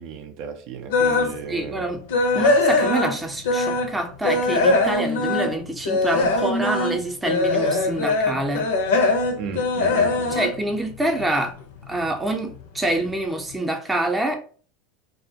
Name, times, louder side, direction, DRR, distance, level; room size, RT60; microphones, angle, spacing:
voice 1, 0.0-1.9 9.3-10.4, right 6 dB, 60° right, 0.4 m, -35 dB
sound 1, 0.9-1.4 1.8-4.0 4.2-11.5 11.8-12.1 12.6-12.7 13.0-13.1, left 2 dB, 80° left, 0.5 m, -21 dB
voice 2, 1.5-2.0 2.3-8.7 10.3-11.5 11.9-14.4, right 1 dB, 10° right, 0.6 m, -26 dB
2.4 x 2.1 x 2.7 m
hypercardioid pair, 100°, 0 cm